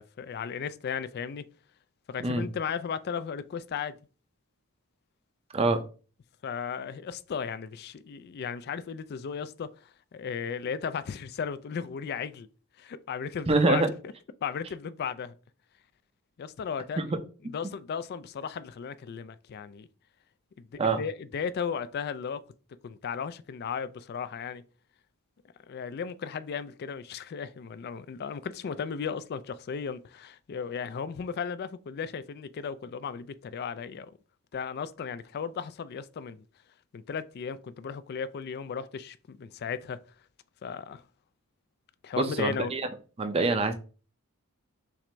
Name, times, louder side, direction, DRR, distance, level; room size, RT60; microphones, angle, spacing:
voice 1, 0.0-1.5 2.1-4.0 6.4-12.5 12.8-13.9 14.4-15.4 16.4-17.0 17.5-19.9 20.6-22.4 22.8-24.6 25.7-34.1 34.5-36.4 36.9-40.0 40.6-41.0 42.0-42.7, left 6 dB, 45° left, 0.3 m, -35 dB
voice 2, 13.5-13.9 17.0-17.2 20.8-21.0 42.2-42.9 43.2-43.7, right 3 dB, 25° right, 0.5 m, -25 dB
5.8 x 2.6 x 3.3 m
head